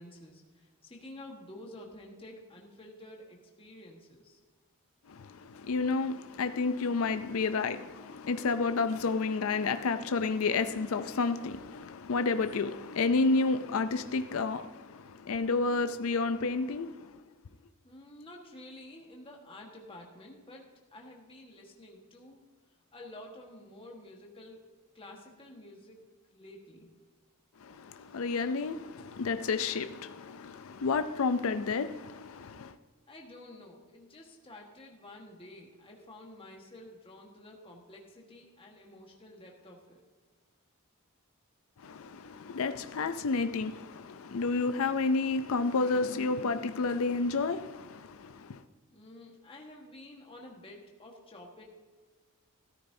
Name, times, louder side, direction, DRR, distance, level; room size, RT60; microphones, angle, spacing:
voice 1, 0.0-4.4 17.8-20.7 20.9-22.4 22.9-24.7 24.9-26.0 26.3-26.9 33.1-40.0 48.9-51.6, left 1 dB, 25° left, 1.4 m, -50 dB
voice 2, 5.1-17.2 27.6-32.8 41.8-48.6, left 4 dB, 70° left, 0.5 m, -30 dB
13.5 x 13.5 x 2.7 m
head